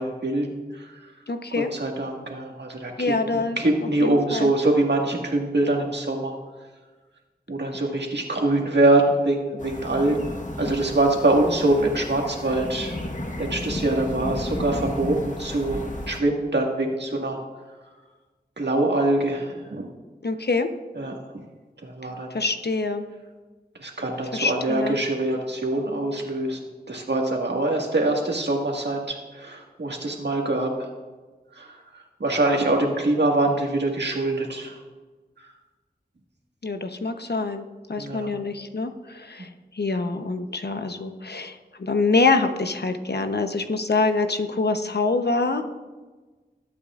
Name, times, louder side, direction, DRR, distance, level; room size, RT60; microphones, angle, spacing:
voice 1, 0.0-1.1 1.6-6.3 7.5-10.3 10.6-12.9 13.4-17.4 18.6-19.9 20.9-21.2 21.8-22.4 23.8-26.6 26.9-30.9 31.6-34.8 38.0-38.3, right 2 dB, 85° right, 0 dB, 1.8 m, -24 dB
voice 2, 1.3-1.7 3.0-3.6 4.0-4.5 20.2-20.7 22.3-23.1 24.3-25.0 36.6-39.5 39.7-45.6, left 3 dB, 70° left, 7 dB, 0.9 m, -25 dB
sound 1, 9.6-16.2, left 1 dB, 45° left, 1.3 m, -33 dB
20.5 x 8.6 x 2.5 m, 1.3 s
wide cardioid pair, 45°, 17 cm